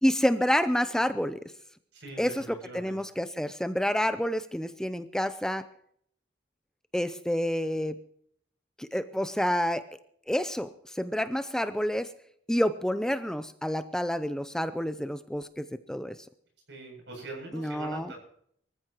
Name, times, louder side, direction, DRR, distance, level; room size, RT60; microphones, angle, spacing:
voice 1, 0.0-1.4 2.2-5.7 6.9-8.0 8.8-9.8 10.3-12.1 12.5-16.2 17.5-18.1, equal, 5° left, 11 dB, 0.5 m, -28 dB
voice 2, 1.9-3.0 16.7-18.2, right 2 dB, 70° right, 2 dB, 7.6 m, -42 dB
24.0 x 14.5 x 3.0 m, 0.66 s
head